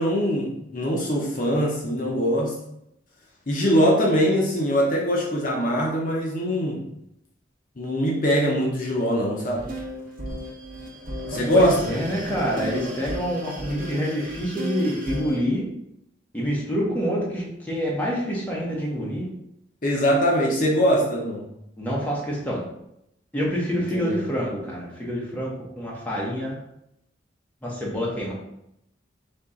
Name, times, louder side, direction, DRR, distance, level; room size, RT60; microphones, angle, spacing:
voice 1, 0.0-2.5 3.5-6.8 7.8-9.7 11.3-11.7 19.8-21.5 23.9-24.2, equal, 45° left, -2 dB, 0.7 m, -22 dB
sound 1, 9.4-15.4, equal, 45° right, 0.9 m, -34 dB
voice 2, 11.5-15.7 16.3-19.3 21.8-22.6 23.3-26.6 27.6-28.3, equal, 10° left, -5 dB, 0.9 m, -27 dB
4.2 x 3.0 x 3.7 m, 0.80 s
head